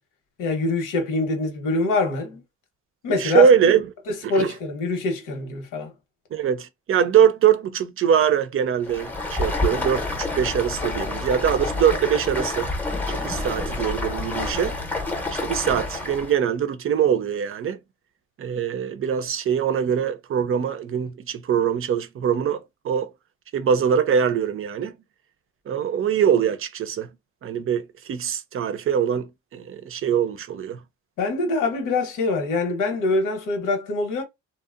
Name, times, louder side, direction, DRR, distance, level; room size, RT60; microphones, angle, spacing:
voice 1, 0.4-2.4 3.0-3.5 4.1-5.9 31.2-34.2, left 3 dB, 85° left, 0.9 m, -24 dB
voice 2, 3.2-3.9 4.2-4.5 6.3-12.7 13.1-14.8 15.3-17.8 18.4-23.1 23.5-25.0 25.7-27.1 27.4-30.8, right 8 dB, 45° right, 0.5 m, -22 dB
Stream, 8.8-16.4, left 2 dB, 5° left, 0.7 m, -28 dB
2.8 x 2.0 x 2.4 m
cardioid pair, 90°, 30 cm